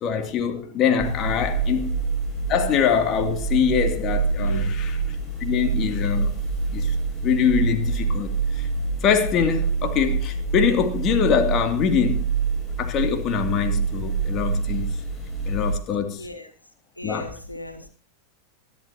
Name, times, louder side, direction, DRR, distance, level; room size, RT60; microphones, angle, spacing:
voice 1, 0.0-1.9 2.5-5.0 5.4-6.4 6.7-6.9 7.2-8.7 9.0-12.3 12.8-15.0 15.5-16.3 17.0-17.3, left 7 dB, 35° left, 2.6 m, -23 dB
sound 1, 1.0-15.7, right 4 dB, 10° left, 6.8 m, -26 dB
voice 2, 4.3-4.8 16.1-16.5 17.0-17.9, left 1 dB, 85° left, 3.1 m, -37 dB
26.5 x 12.0 x 2.8 m
figure-of-eight pair, 90°, 0 cm